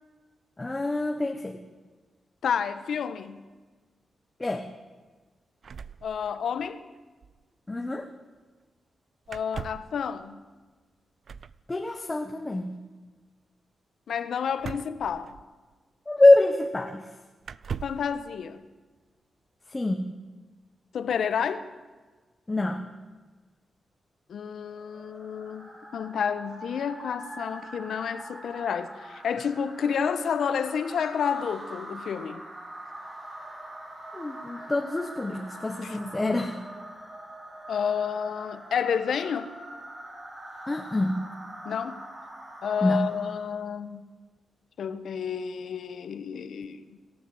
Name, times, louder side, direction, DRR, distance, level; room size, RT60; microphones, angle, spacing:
voice 1, 0.6-1.6 4.4-4.7 7.7-8.1 11.7-12.7 16.1-17.1 19.7-20.1 22.5-22.9 34.1-36.6 40.7-41.2 42.8-43.0, left 2 dB, 20° left, 1.3 m, -25 dB
voice 2, 2.4-3.4 6.0-6.8 9.3-10.4 14.1-15.4 17.8-18.6 20.9-21.7 24.3-32.4 35.8-36.0 37.7-39.5 41.6-42.0 42.6-44.1 44.8-47.0, left 7 dB, 75° left, 1.3 m, -30 dB
sound 1, 5.6-6.7 7.0-7.1 7.2-7.4 9.3-10.0 11.2-11.6 14.6-15.7 16.6-16.7 17.4-18.1, right 6 dB, 55° right, 0.6 m, -40 dB
sound 2, 24.7-43.6, right 1 dB, 35° right, 6.4 m, -43 dB
26.0 x 13.5 x 8.0 m
wide cardioid pair, 120°, 0 cm